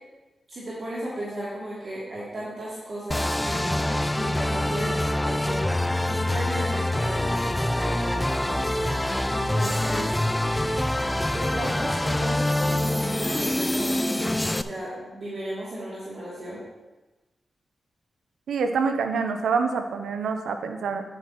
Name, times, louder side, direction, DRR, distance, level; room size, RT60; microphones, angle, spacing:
voice 1, 0.5-8.7 9.3-10.1 11.3-12.4 12.6-14.2 14.5-16.6, right 1 dB, 60° right, -8 dB, 2.8 m, -35 dB
sound 1, 3.1-14.6, left 1 dB, 15° left, 0.4 m, -25 dB
voice 2, 18.5-21.0, right 5 dB, 90° right, 7 dB, 0.8 m, -26 dB
10.5 x 9.0 x 3.0 m, 1.1 s
cardioid pair, 50°, 0 cm